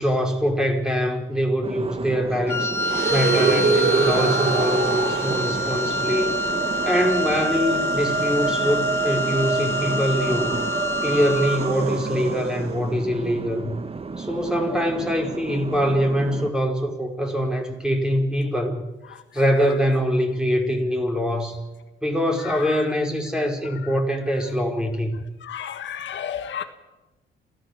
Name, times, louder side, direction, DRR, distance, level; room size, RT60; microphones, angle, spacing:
voice 1, 0.0-2.7 3.1-6.3 6.8-10.6 11.0-13.7 14.2-18.8 19.3-21.6 22.0-25.1, equal, 5° right, 5.2 m, -23 dB
sound 1, 1.6-16.5, right 4 dB, 30° right, 1.3 m, -33 dB
Wind instrument woodwind instrument, 2.5-11.7, left 1 dB, 10° left, 1.0 m, -27 dB
sound 2, 2.8-13.0, right 4 dB, 55° right, 3.0 m, -26 dB
voice 2, 22.4-22.8 23.8-23.9 25.4-26.6, left 9 dB, 70° left, 1.6 m, -33 dB
27.5 x 16.0 x 7.5 m
cardioid pair, 90°, 20 cm